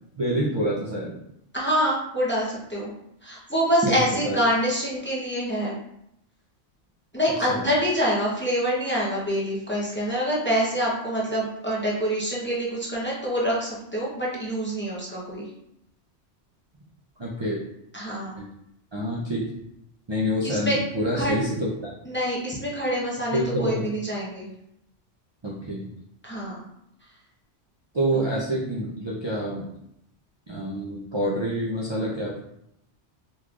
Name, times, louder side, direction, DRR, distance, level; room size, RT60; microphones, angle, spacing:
voice 1, 0.2-1.2 3.8-4.4 7.5-7.6 17.2-17.6 18.4-18.5 18.9-19.4 20.1-21.9 23.3-23.9 25.4-25.9 27.9-29.7 30.5-32.4, equal, 40° right, -5 dB, 0.4 m, -27 dB
voice 2, 1.5-2.9 3.2-5.7 7.1-15.5 17.9-18.4 20.4-20.8 21.1-21.4 22.1-24.5 26.2-26.6 28.1-28.2, equal, 10° left, -6 dB, 0.7 m, -26 dB
3.9 x 3.1 x 2.4 m, 0.79 s
omnidirectional pair, 1.2 m